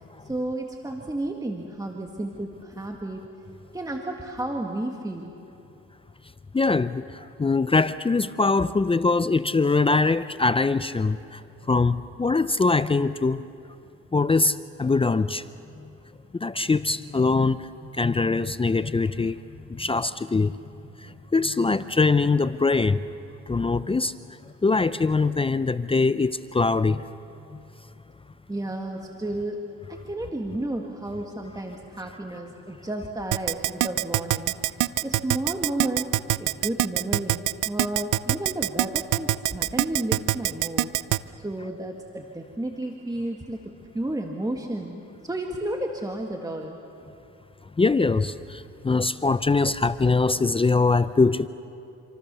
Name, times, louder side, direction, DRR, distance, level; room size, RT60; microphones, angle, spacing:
voice 1, 0.2-3.3 3.7-5.3 28.5-34.8 35.0-36.1 36.4-40.9 41.4-46.8, right 1 dB, 10° right, 1.9 m, -32 dB
voice 2, 6.5-11.4 11.7-13.5 14.1-15.4 16.3-19.4 19.7-20.5 21.0-23.0 23.5-24.1 24.6-27.0 47.8-51.5, left 3 dB, 20° left, 0.6 m, -22 dB
Keyboard (musical), 33.3-41.2, right 17 dB, 80° right, 0.7 m, -23 dB
27.0 x 26.5 x 6.9 m
cardioid pair, 90°, 30 cm